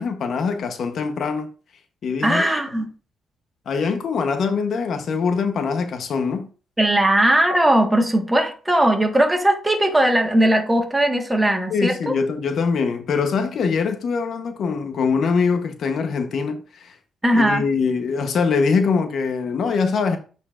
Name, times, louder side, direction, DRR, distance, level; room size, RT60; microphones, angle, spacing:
voice 1, 0.0-1.5 2.0-2.4 3.7-6.5 11.7-17.0 17.3-20.2, left 5 dB, 60° left, 0.9 m, -23 dB
voice 2, 2.2-2.8 6.8-12.1 17.2-17.7, right 1 dB, 10° right, 1.5 m, -18 dB
8.6 x 4.4 x 2.5 m
cardioid pair, 90°, 0 cm